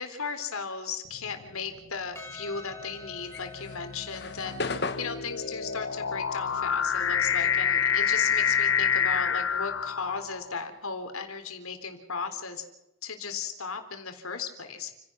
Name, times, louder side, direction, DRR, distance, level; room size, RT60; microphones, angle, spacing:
voice 1, 0.0-12.6 13.0-14.9, left 5 dB, 85° left, 7 dB, 3.8 m, -36 dB
sound 1, 1.1-1.5 2.4-10.6, left 7 dB, 65° left, 1.1 m, -28 dB
Percussion, 2.1-6.8, left 4 dB, 10° left, 2.6 m, -48 dB
sound 2, 3.2-7.9 8.2-10.2, left 3 dB, 50° left, 1.6 m, -37 dB
29.5 x 17.0 x 6.3 m, 0.89 s
head